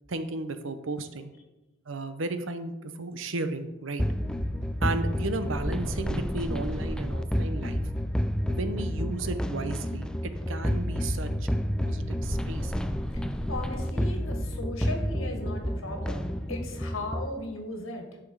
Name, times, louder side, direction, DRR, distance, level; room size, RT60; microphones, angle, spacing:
voice 1, 0.1-1.3 1.9-4.0 4.8-7.8 8.5-11.5 11.8-12.7, right 2 dB, 70° right, 10 dB, 0.8 m, -34 dB
sound 1, 4.0-17.3, equal, 5° left, 0.4 m, -30 dB
voice 2, 13.5-18.1, left 2 dB, 80° left, 3 dB, 1.9 m, -37 dB
10.5 x 6.1 x 4.8 m, 1.0 s
head